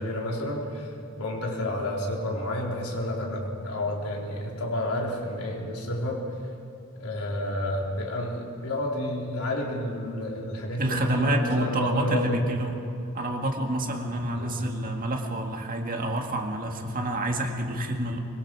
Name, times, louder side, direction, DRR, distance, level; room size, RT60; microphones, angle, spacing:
voice 1, 0.0-6.2 7.0-12.4 14.3-14.5, left 1 dB, 80° left, -2 dB, 4.3 m, -30 dB
voice 2, 10.8-12.8 13.1-18.2, right 1 dB, 40° right, 3 dB, 2.0 m, -28 dB
24.5 x 23.0 x 4.9 m, 2.5 s
head